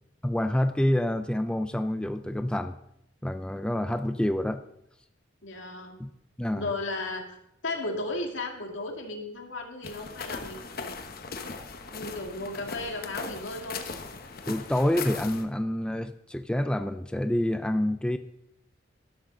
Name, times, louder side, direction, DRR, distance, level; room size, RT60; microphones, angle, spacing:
voice 1, 0.2-2.8 3.2-4.6 6.0-6.1 6.4-6.7 14.5-18.2, left 1 dB, 5° left, 9 dB, 0.4 m, -27 dB
voice 2, 5.4-6.0 6.5-7.4 7.6-11.1 11.9-13.9, left 2 dB, 75° left, 2 dB, 2.2 m, -35 dB
sound 1, 9.8-15.4, left 4 dB, 50° left, 1.0 m, -39 dB
12.0 x 6.4 x 6.1 m, 0.77 s
head